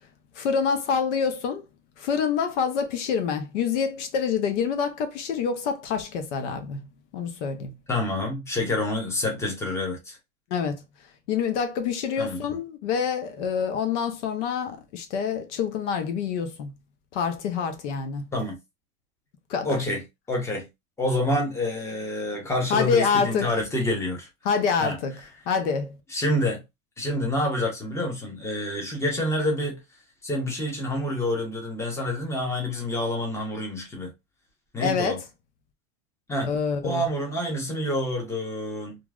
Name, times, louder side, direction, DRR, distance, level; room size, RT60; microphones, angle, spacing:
voice 1, 0.4-1.6 2.0-6.8 7.1-7.7 10.5-10.8 11.3-16.7 17.1-18.2 19.5-19.8 22.7-23.6 24.4-25.2 25.5-26.0 34.8-35.2 36.5-37.1, left 6 dB, 65° left, 0.8 m, -26 dB
voice 2, 7.9-10.2 12.2-12.4 18.3-18.6 19.6-20.0 20.3-20.7 21.0-24.3 24.8-25.0 26.1-26.6 27.0-29.8 30.2-34.1 34.7-35.2 36.3-36.5 36.8-39.0, left 1 dB, 5° left, 0.9 m, -27 dB
2.9 x 2.5 x 2.3 m
supercardioid pair, 135°, 38 cm